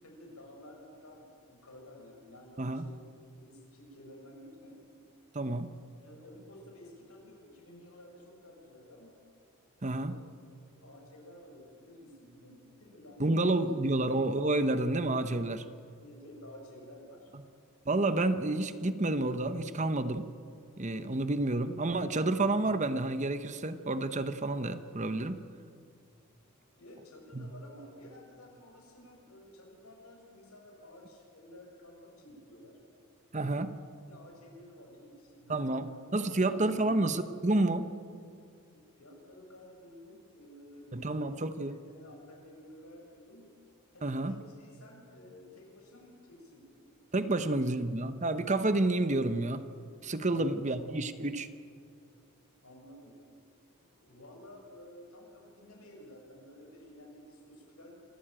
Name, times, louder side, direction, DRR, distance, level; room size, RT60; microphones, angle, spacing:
voice 1, 0.0-3.0 3.3-4.8 6.0-9.1 10.0-10.2 10.7-13.6 16.0-17.3 26.8-32.8 34.0-37.0 38.7-41.4 41.7-43.5 43.9-47.4 50.2-50.8 52.6-53.2 53.7-57.9, left 1 dB, 80° left, 0 dB, 7.1 m, -53 dB
voice 2, 5.3-5.7 9.8-10.2 13.2-15.6 17.9-20.3 20.8-25.4 27.3-27.5 33.3-33.8 35.5-35.9 36.1-37.9 40.9-41.8 44.0-44.3 47.1-49.7 50.0-51.5, right 2 dB, 30° right, 11 dB, 0.9 m, -29 dB
26.5 x 15.5 x 9.0 m, 2.3 s
head